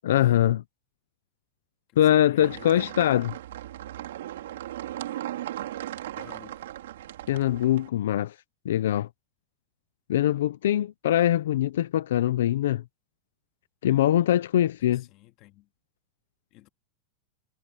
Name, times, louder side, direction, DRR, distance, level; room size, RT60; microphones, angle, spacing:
voice 1, 0.0-0.6 2.0-3.3 7.3-8.3 8.6-9.1 10.1-12.8 13.8-15.0, left 12 dB, 85° left, 0.6 m, -23 dB
voice 2, 1.9-2.9 6.2-6.7 14.8-15.7 16.5-16.7, left 17 dB, 35° left, 2.4 m, -51 dB
sound 1, 2.4-7.9, right 13 dB, 85° right, 3.5 m, -37 dB
supercardioid pair, 170°, 0 cm